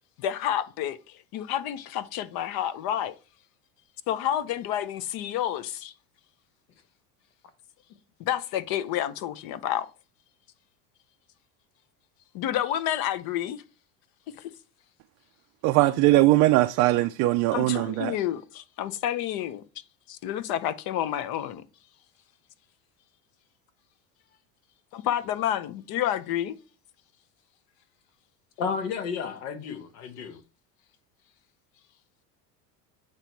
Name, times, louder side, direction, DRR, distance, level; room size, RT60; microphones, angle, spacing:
voice 1, 0.2-3.1 4.1-5.9 8.2-9.9 12.3-13.6 14.4-14.5 17.5-19.6 20.1-21.6 24.9-26.5, left 11 dB, 50° left, 0.7 m, -29 dB
voice 2, 15.6-18.2, right 17 dB, 45° right, 0.4 m, -21 dB
voice 3, 28.6-30.4, left 6 dB, 75° left, 1.5 m, -32 dB
8.7 x 3.0 x 4.5 m
supercardioid pair, 110°, 46 cm